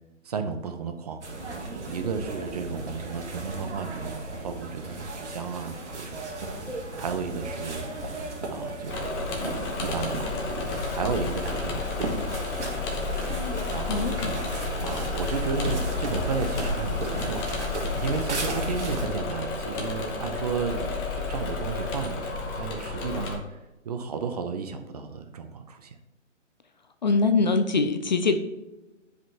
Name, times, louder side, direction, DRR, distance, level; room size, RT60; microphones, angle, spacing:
voice 1, 0.2-1.3 1.9-6.3 7.0-7.8 8.5-10.5 10.9-12.4 13.7-14.2 14.8-17.5 18.0-23.6 23.8-26.0, right 5 dB, 35° right, 7 dB, 0.6 m, -33 dB
sound 1, 1.2-19.1, right 2 dB, 65° right, 1.9 m, -35 dB
Engine / Mechanisms, 8.9-23.4, left 4 dB, 20° left, 0.9 m, -31 dB
voice 2, 13.9-14.4 27.0-28.4, left 4 dB, 40° left, 9 dB, 0.4 m, -23 dB
10.0 x 5.1 x 2.8 m, 1.1 s
figure-of-eight pair, 135°, 37 cm